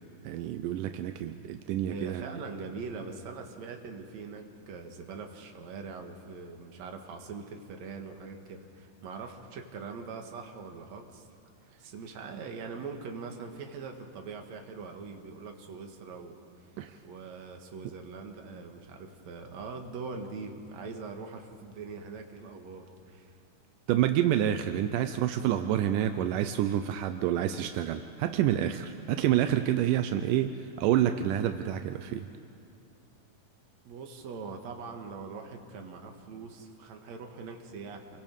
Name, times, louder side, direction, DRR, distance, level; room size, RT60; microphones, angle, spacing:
voice 1, 0.2-2.4 16.8-17.0 23.9-32.3, right 11 dB, 85° right, 8 dB, 2.3 m, -28 dB
voice 2, 1.9-11.3 11.6-16.7 17.0-23.4 33.8-38.2, right 4 dB, 60° right, 3 dB, 2.8 m, -42 dB
28.5 x 23.0 x 5.4 m, 2.7 s
omnidirectional pair, 3.7 m